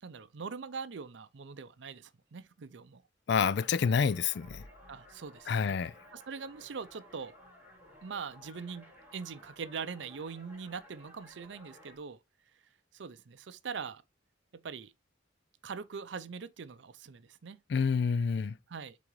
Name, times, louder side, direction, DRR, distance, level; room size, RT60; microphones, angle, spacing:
voice 1, 0.0-3.0 4.9-5.7 6.1-7.4 8.0-12.2 12.9-14.0 14.5-14.9 15.6-17.6 18.7-19.0, right 5 dB, 70° right, 0.5 m, -42 dB
voice 2, 3.3-4.6 5.5-5.9 17.7-18.5, left 6 dB, 60° left, 0.4 m, -28 dB
sound 1, 3.5-12.0, equal, 10° right, 3.3 m, -56 dB
8.4 x 3.8 x 3.1 m
head